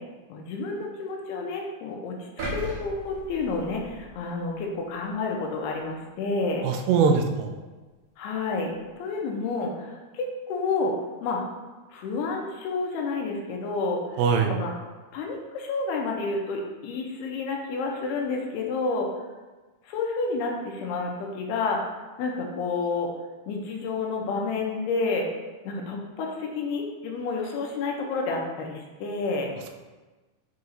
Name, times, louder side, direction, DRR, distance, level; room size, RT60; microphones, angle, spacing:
voice 1, 0.3-2.1 2.5-6.7 8.2-8.7 9.0-10.9 11.2-11.4 11.9-14.0 14.4-14.7 15.1-19.1 19.9-21.8 22.2-23.1 23.5-25.3 25.7-29.5, left 3 dB, 90° left, 0 dB, 2.8 m, -29 dB
sound 1, 2.4-4.5 5.0-5.2, right 1 dB, 65° right, 1.7 m, -36 dB
voice 2, 6.6-7.6 14.2-14.5, right 5 dB, 80° right, 4 dB, 2.5 m, -22 dB
8.1 x 4.8 x 2.7 m, 1.2 s
omnidirectional pair, 4.6 m